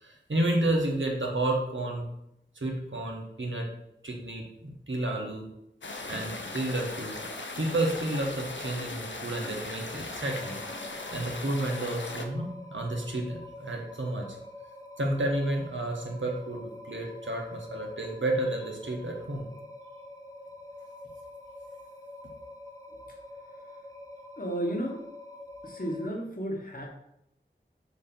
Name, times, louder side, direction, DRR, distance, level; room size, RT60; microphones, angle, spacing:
voice 1, 0.0-2.0 2.5-3.7 4.0-5.4 6.1-7.1 7.5-10.6 11.1-14.4 15.0-19.5, right 1 dB, 85° right, 0 dB, 1.2 m, -31 dB
sound 1, 5.8-12.3, left 2 dB, 80° left, 0.6 m, -38 dB
sound 2, 10.2-26.1, left 1 dB, 15° left, 1.0 m, -46 dB
voice 2, 24.4-25.0 25.6-26.9, right 1 dB, 50° left, 0 dB, 1.3 m, -32 dB
6.4 x 2.8 x 5.3 m, 0.80 s
wide cardioid pair, 45°, 19 cm